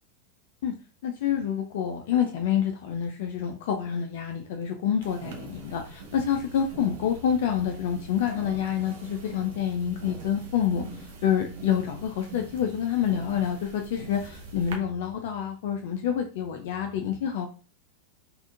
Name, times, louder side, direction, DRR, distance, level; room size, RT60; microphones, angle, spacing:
voice 1, 1.0-17.5, left 9 dB, 55° left, 4 dB, 0.4 m, -27 dB
sound 1, 5.0-14.8, right 3 dB, 55° right, 0.6 m, -43 dB
3.5 x 2.4 x 2.4 m, 0.36 s
figure-of-eight pair, 90°, 0 cm